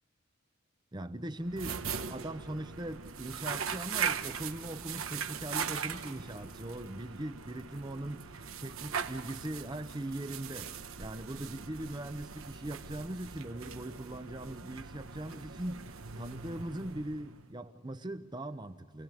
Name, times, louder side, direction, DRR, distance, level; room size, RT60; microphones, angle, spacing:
voice 1, 0.9-19.0, right 1 dB, 20° right, 0.7 m, -40 dB
sound 1, 1.4-17.5, right 7 dB, 85° right, 1.1 m, -40 dB
28.0 x 19.5 x 9.7 m
head